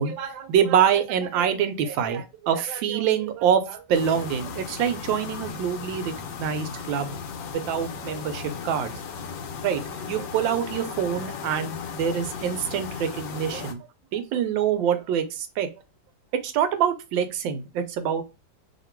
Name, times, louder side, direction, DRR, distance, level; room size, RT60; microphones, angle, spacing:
voice 1, 0.0-6.1 6.4-7.1 7.5-8.9 9.6-9.8 10.1-13.8 14.1-15.7 16.3-18.2, right 8 dB, 90° right, 9 dB, 1.4 m, -25 dB
sound 1, 3.9-13.7, left 5 dB, 75° left, 1.3 m, -36 dB
2.9 x 2.9 x 4.4 m, 0.27 s
omnidirectional pair, 2.0 m